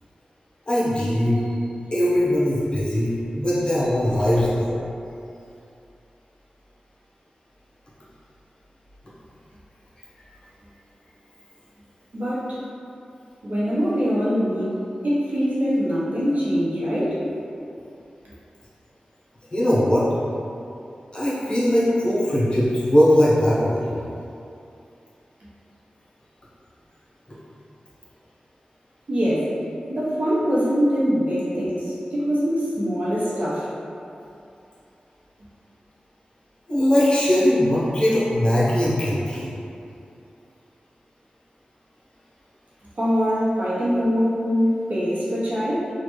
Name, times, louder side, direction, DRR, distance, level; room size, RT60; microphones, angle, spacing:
voice 1, 0.7-1.4 1.9-4.8 19.5-20.1 21.1-23.9 36.7-39.6, left 1 dB, 35° left, -9 dB, 0.9 m, -20 dB
voice 2, 12.1-12.6 13.4-14.8 15.0-17.2 29.1-29.5 29.9-33.7 42.9-45.9, equal, 65° right, -9 dB, 0.9 m, -23 dB
3.1 x 2.4 x 3.1 m, 2.6 s
wide cardioid pair, 65°, 3 cm